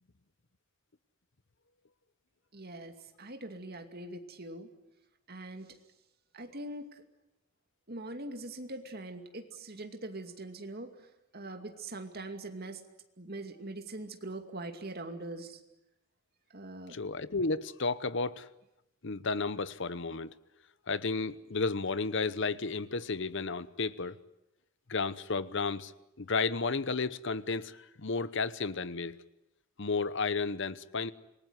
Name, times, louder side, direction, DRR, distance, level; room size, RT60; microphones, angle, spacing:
voice 1, 2.5-4.7 5.3-5.8 6.3-7.0 7.9-12.8 13.2-15.6 16.5-17.0, right 2 dB, 45° right, 2.5 m, -42 dB
voice 2, 16.9-18.5 19.0-20.3 20.9-24.2 24.9-25.9 26.2-29.2 29.8-31.1, left 4 dB, 55° left, 0.9 m, -32 dB
27.5 x 19.5 x 9.7 m
head